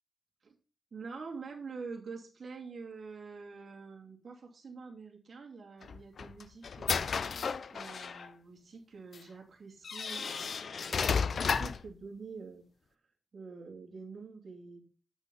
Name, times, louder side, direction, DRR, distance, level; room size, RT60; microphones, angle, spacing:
voice 1, 0.9-12.6 13.3-14.9, right 4 dB, 55° right, 0 dB, 2.8 m, -46 dB
sound 1, 5.8-8.3 9.1-9.2 9.8-11.9, left 5 dB, 60° left, 0.5 m, -33 dB
8.5 x 6.2 x 5.5 m, 0.38 s
wide cardioid pair, 115°, 0 cm